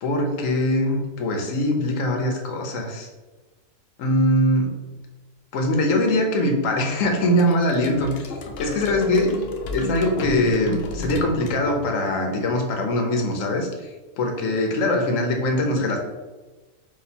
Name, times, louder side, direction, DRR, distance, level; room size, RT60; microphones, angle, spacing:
voice 1, 0.0-3.1 4.0-4.8 5.5-9.3 9.7-13.9 14.2-16.0, left 1 dB, 85° left, 3 dB, 1.1 m, -22 dB
sound 1, 7.4-12.2, left 1 dB, 60° left, 0.7 m, -33 dB
4.1 x 2.7 x 4.2 m, 1.2 s
omnidirectional pair, 1.3 m